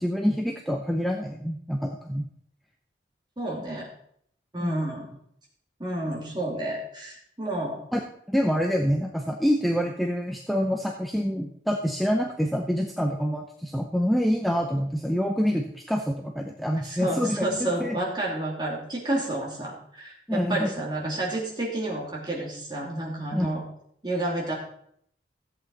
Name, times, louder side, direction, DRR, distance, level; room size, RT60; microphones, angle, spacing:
voice 1, 0.0-2.2 4.6-4.9 7.9-17.5 17.8-18.0 20.3-20.7 23.3-23.5, equal, ahead, 1 dB, 0.7 m, -26 dB
voice 2, 3.4-3.9 4.5-5.1 5.8-7.8 16.8-23.6 24.0-24.5, right 1 dB, 25° right, -3 dB, 2.7 m, -30 dB
14.0 x 8.1 x 4.1 m, 0.68 s
head